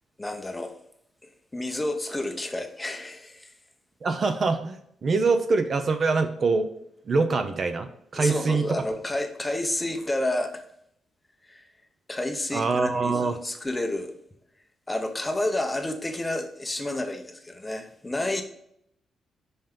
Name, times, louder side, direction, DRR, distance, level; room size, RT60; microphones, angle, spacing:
voice 1, 0.2-0.8 1.2-3.5 8.2-10.6 11.4-11.7 12.1-14.1 14.9-18.4, left 1 dB, 10° left, 6 dB, 0.6 m, -30 dB
voice 2, 4.0-6.7 7.1-8.6 12.5-13.4, right 4 dB, 35° right, 8 dB, 0.5 m, -24 dB
5.7 x 5.5 x 3.6 m, 0.72 s
wide cardioid pair, 175°, 0 cm